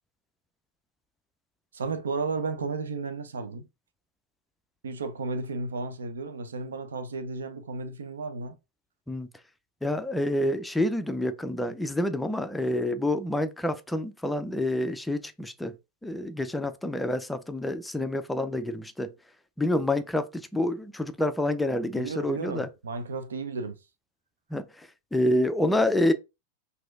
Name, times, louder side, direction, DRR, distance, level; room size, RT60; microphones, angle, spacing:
voice 1, 1.7-3.6 4.8-8.6 22.0-23.8, right 4 dB, 70° right, 0.5 m, -33 dB
voice 2, 9.8-15.8 16.0-19.1 19.6-22.7 24.5-26.1, left 1 dB, 5° left, 0.4 m, -28 dB
5.9 x 2.6 x 2.4 m
figure-of-eight pair, 90°, 0 cm